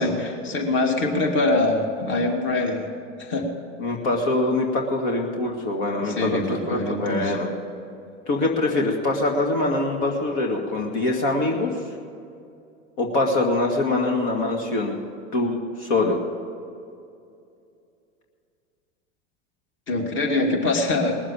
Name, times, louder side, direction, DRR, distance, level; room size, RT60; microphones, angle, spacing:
voice 1, 0.0-2.9 3.2-3.5 6.0-7.4 19.9-21.2, left 2 dB, 30° left, 3 dB, 2.3 m, -24 dB
voice 2, 3.8-6.4 6.7-7.5 8.3-11.7 13.0-15.0 15.3-16.2, left 2 dB, 50° left, 0 dB, 2.1 m, -23 dB
20.0 x 7.4 x 8.7 m, 2.5 s
hypercardioid pair, 95°, 38 cm